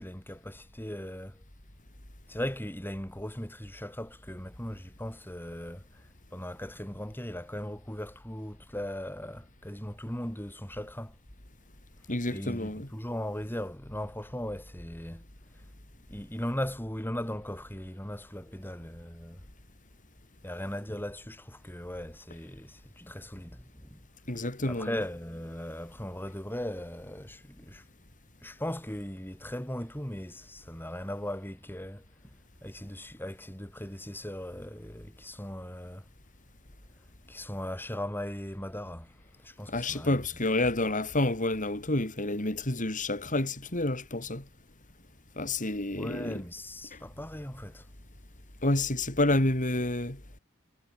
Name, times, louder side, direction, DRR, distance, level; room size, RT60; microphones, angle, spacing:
voice 1, 0.0-1.4 2.3-6.0 6.3-11.2 12.3-15.2 16.1-19.4 20.4-24.0 24.3-27.8 28.4-32.3 32.6-36.1 37.3-40.2 45.9-47.9, left 1 dB, 10° left, 5.4 m, -38 dB
voice 2, 12.1-12.9 24.3-24.9 39.7-44.4 45.4-46.4 46.9-47.0 48.6-50.2, left 2 dB, 35° left, 3.9 m, -29 dB
head